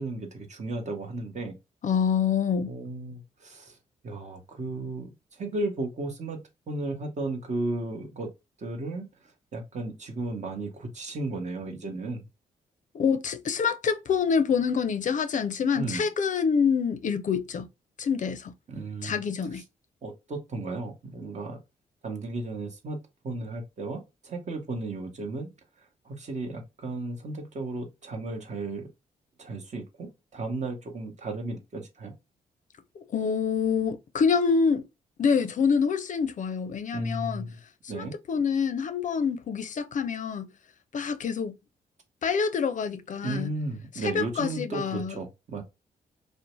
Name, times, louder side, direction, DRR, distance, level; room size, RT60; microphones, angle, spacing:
voice 1, 0.0-1.6 2.7-3.8 4.0-6.4 6.7-8.3 8.6-9.1 9.5-12.3 15.7-16.1 18.7-19.2 19.5-19.6 20.0-21.6 22.0-23.0 23.2-25.5 26.0-28.9 29.4-32.1 36.9-37.6 37.9-38.1 43.2-45.6, right 2 dB, 45° right, 0.9 m, -34 dB
voice 2, 1.8-2.7 12.9-17.7 18.0-18.5 19.0-19.6 33.0-34.9 35.2-37.5 37.8-40.5 40.9-41.5 42.2-43.5 44.0-45.2, left 6 dB, 50° left, 0.5 m, -26 dB
2.6 x 2.1 x 2.9 m
supercardioid pair, 55°, 16 cm